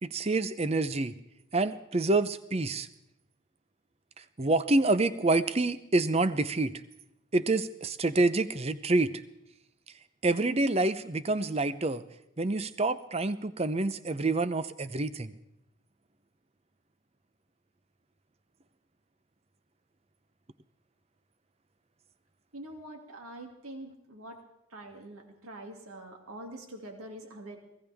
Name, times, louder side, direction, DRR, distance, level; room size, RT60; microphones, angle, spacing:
voice 1, 0.0-1.1 1.5-2.9 4.4-6.7 7.3-9.1 10.2-12.0 12.4-15.3, right 2 dB, 30° right, 13 dB, 0.6 m, -27 dB
voice 2, 22.5-24.4 24.7-27.6, right 1 dB, 90° right, 3 dB, 2.5 m, -45 dB
24.0 x 16.5 x 3.5 m, 0.82 s
head